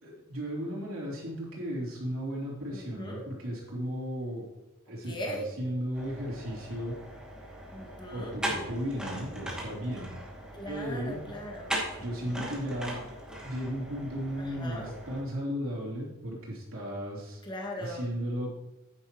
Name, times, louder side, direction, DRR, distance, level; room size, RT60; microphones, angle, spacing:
voice 1, 0.0-4.5 4.9-6.9 8.1-10.1 10.7-11.2 12.0-13.1 13.4-17.4 17.8-18.5, equal, 70° right, -4 dB, 3.4 m, -35 dB
voice 2, 2.7-3.2 5.0-5.5 7.7-8.4 10.5-12.6 14.4-14.9 17.4-18.1, equal, 20° left, -2 dB, 1.9 m, -40 dB
sound 1, 5.9-15.2, right 1 dB, 5° right, 2.2 m, -39 dB
10.5 x 9.4 x 3.0 m, 0.96 s
head